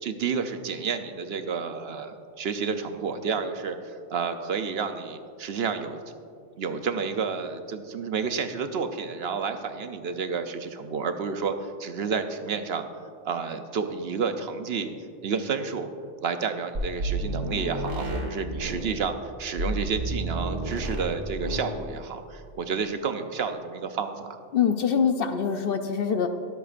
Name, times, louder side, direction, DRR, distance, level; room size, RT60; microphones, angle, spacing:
voice 1, 0.0-6.0 6.6-12.9 13.2-14.9 15.2-15.9 16.2-24.3, right 5 dB, 65° right, 8 dB, 0.8 m, -30 dB
sound 1, 16.7-18.9 19.6-21.1 21.4-21.7, right 1 dB, 90° right, 1.9 m, -30 dB
voice 2, 24.5-26.3, left 7 dB, 60° left, 7 dB, 0.7 m, -24 dB
22.5 x 8.0 x 2.5 m, 2.2 s
omnidirectional pair, 1.2 m